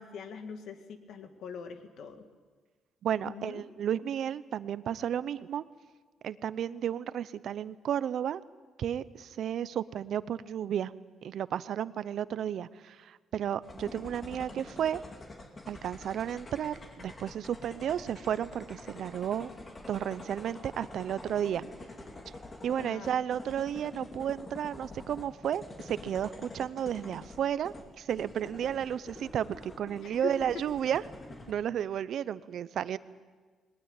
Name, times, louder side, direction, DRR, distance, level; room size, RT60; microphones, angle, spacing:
voice 1, 0.0-2.2 3.2-3.6 22.8-23.2 30.0-30.6, left 6 dB, 70° left, 8 dB, 2.0 m, -42 dB
voice 2, 3.0-5.6 6.2-8.4 8.8-10.9 11.2-15.0 15.7-19.5 19.9-21.6 22.6-31.0 31.5-33.0, right 9 dB, 70° right, 17 dB, 0.7 m, -33 dB
sound 1, 13.6-31.5, left 2 dB, 30° left, 2.9 m, -47 dB
19.5 x 19.5 x 9.1 m, 1.4 s
cardioid pair, 90°, 0 cm